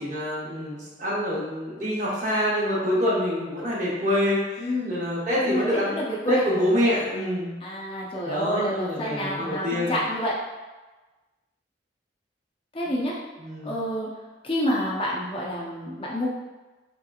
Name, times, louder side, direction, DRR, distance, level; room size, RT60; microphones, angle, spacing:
voice 1, 0.0-6.0 6.3-7.5 8.2-10.0 13.4-13.7, equal, 40° right, -6 dB, 0.9 m, -26 dB
voice 2, 4.6-5.0 5.5-6.4 7.6-10.3 12.7-13.1 13.6-14.1 14.4-16.3, equal, 30° left, -4 dB, 0.5 m, -28 dB
3.5 x 2.8 x 2.3 m, 1.2 s
head